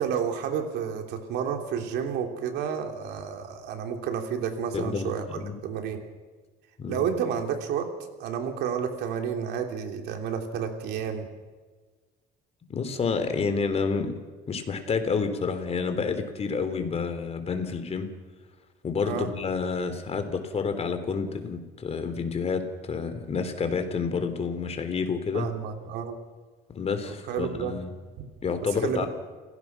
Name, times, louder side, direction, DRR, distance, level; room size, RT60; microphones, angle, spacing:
voice 1, 0.0-6.0 6.9-7.9 8.2-11.3 19.0-19.3 25.3-26.2 27.0-27.7 28.7-29.1, right 7 dB, 85° right, 4 dB, 3.3 m, -30 dB
voice 2, 4.7-5.5 6.8-7.0 12.7-14.2 14.5-18.1 18.8-25.5 26.7-27.9 28.4-29.1, left 5 dB, 40° left, 8 dB, 3.5 m, -29 dB
30.0 x 17.0 x 6.1 m, 1.4 s
cardioid pair, 110°, 17 cm